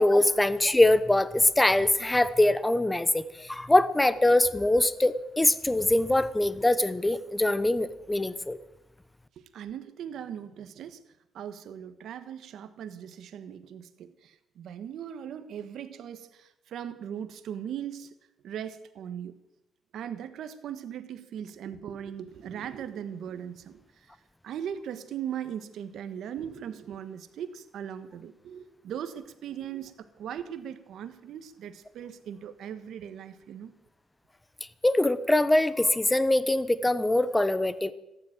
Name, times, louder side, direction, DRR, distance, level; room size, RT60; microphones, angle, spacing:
voice 1, 0.0-8.6 34.8-37.9, left 1 dB, 10° left, 15 dB, 1.0 m, -23 dB
voice 2, 9.4-11.0 11.3-18.1 18.4-19.3 19.9-24.1 24.4-33.7, right 9 dB, 75° right, 10 dB, 1.4 m, -39 dB
15.0 x 10.5 x 9.0 m, 0.91 s
cardioid pair, 90°, 0 cm